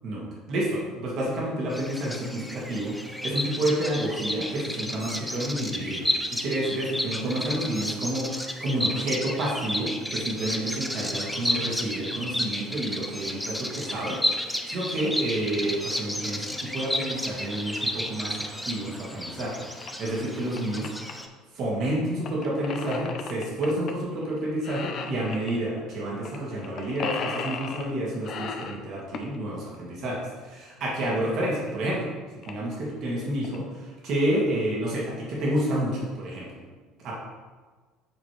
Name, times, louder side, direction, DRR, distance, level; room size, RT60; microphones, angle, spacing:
voice 1, 0.0-20.9 21.6-32.1 32.5-36.5 37.0-37.1, right 1 dB, 55° right, -4 dB, 2.0 m, -29 dB
Bird vocalization bird call bird song, 1.7-21.3, left 1 dB, ahead, 0.7 m, -32 dB
sound 1, 19.8-19.9 20.3-21.1 22.3-23.9 24.2-24.4 24.6-25.5 26.3-26.4 26.6-27.9 28.2-29.4 31.0-31.1 31.7-31.8 32.0-32.1 32.4-32.7 33.2-33.6, left 5 dB, 50° left, 0.6 m, -35 dB
7.5 x 4.4 x 3.2 m, 1.4 s
hypercardioid pair, 65°, 0 cm